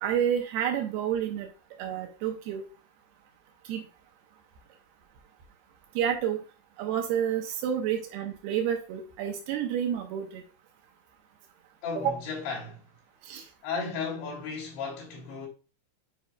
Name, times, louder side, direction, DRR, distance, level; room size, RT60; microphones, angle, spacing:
voice 1, 0.0-1.5 1.8-2.6 3.7-3.8 6.0-6.4 6.8-10.4 12.0-12.1 13.3-13.4, right 9 dB, 85° right, 2.2 m, -29 dB
voice 2, 11.8-12.8 13.6-15.5, left 5 dB, 70° left, 4.8 m, -34 dB
10.0 x 5.1 x 2.3 m
omnidirectional pair, 5.4 m